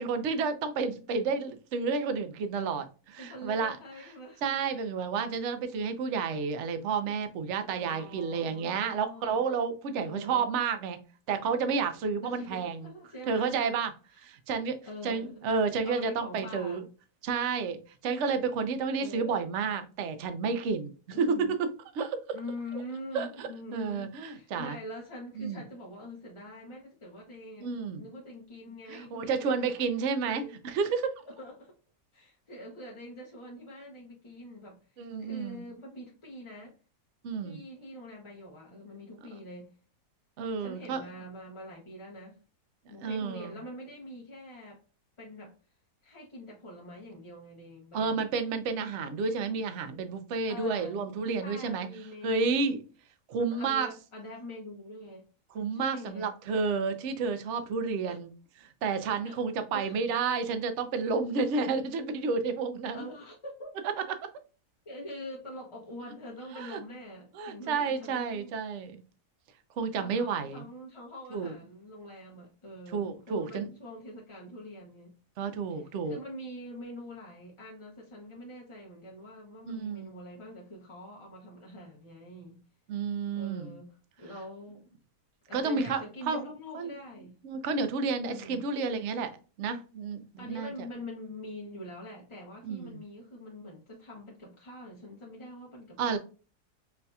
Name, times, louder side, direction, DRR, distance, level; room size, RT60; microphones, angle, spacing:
voice 1, 0.0-3.8 4.4-11.0 11.3-12.9 13.3-13.9 14.2-14.8 15.0-16.8 17.2-21.3 21.9-22.2 23.1-24.8 25.4-25.6 27.6-28.0 28.9-31.1 35.0-35.6 37.2-37.6 40.4-41.0 42.9-43.5 47.9-51.9 52.2-52.8 53.3-53.9 55.5-58.3 58.6-63.0 66.5-66.8 67.4-69.0 69.8-70.6 71.3-71.5 72.9-73.7 75.4-76.2 79.7-80.1 82.9-83.7 85.5-86.0 86.3-86.4 86.7-86.9 87.4-89.3 89.6-90.7 92.6-93.0 96.0-96.2, right 5 dB, 60° right, 0.8 m, -31 dB
voice 2, 3.2-4.4 7.7-9.4 10.0-10.5 12.2-13.5 14.8-15.4 15.8-16.8 19.0-19.4 21.1-21.6 22.3-27.7 28.0-29.7 30.2-30.5 31.3-31.7 32.1-36.7 37.4-39.7 40.6-42.4 42.9-44.8 45.2-45.5 46.0-48.3 50.5-51.0 51.4-52.7 53.3-55.3 55.7-56.3 58.1-58.2 59.2-59.4 59.7-60.0 62.9-63.8 64.9-68.5 70.0-75.1 75.7-82.6 83.3-84.9 85.5-87.4 88.2-88.6 90.4-96.2, left 1 dB, 35° left, 0.5 m, -44 dB
5.6 x 2.7 x 2.3 m
omnidirectional pair, 1.6 m